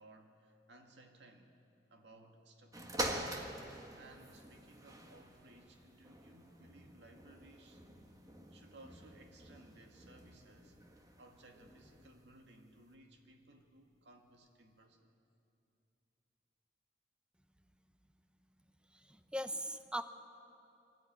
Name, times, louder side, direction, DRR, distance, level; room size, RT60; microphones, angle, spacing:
voice 1, 0.0-1.5 1.9-3.4 4.0-7.8 8.5-15.1, right 2 dB, 85° right, 4 dB, 2.1 m, -60 dB
sound 1, 2.7-12.3 12.9-13.0, right 1 dB, 20° right, 1.5 m, -46 dB
voice 2, 19.1-20.0, equal, 5° right, 10 dB, 0.7 m, -39 dB
23.0 x 14.5 x 9.4 m, 2.7 s
head